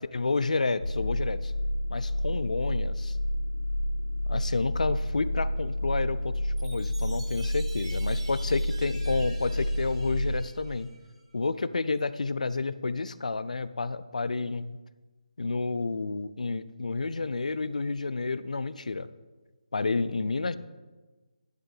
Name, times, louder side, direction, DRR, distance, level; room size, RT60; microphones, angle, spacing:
voice 1, 0.0-1.5 1.9-3.2 4.3-6.3 6.6-10.9 11.3-14.8 15.4-19.1 19.7-20.6, left 3 dB, 80° left, 14 dB, 0.5 m, -30 dB
sound 1, 0.8-10.4, left 1 dB, 65° left, 2.3 m, -30 dB
Chime, 6.6-11.2, right 2 dB, 45° right, 2.8 m, -48 dB
10.5 x 3.7 x 7.2 m, 1.3 s
figure-of-eight pair, 160°, 4 cm